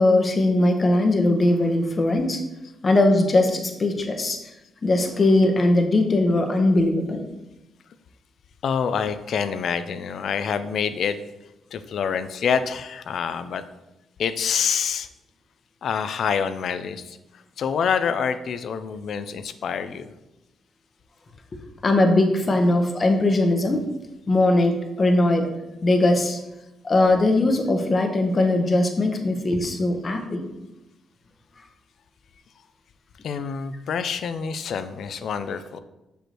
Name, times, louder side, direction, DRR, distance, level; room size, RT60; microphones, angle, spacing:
voice 1, 0.0-2.4 2.8-4.4 4.8-7.2 21.8-23.8 24.3-25.5 25.8-26.4 26.8-30.5, left 2 dB, 35° left, 4 dB, 0.9 m, -20 dB
voice 2, 8.6-11.2 11.7-13.6 14.2-15.1 15.8-17.2 17.6-20.1 33.2-35.8, left 7 dB, 70° left, 11 dB, 0.4 m, -26 dB
6.1 x 5.1 x 2.9 m, 0.96 s
cardioid pair, 80°, 0 cm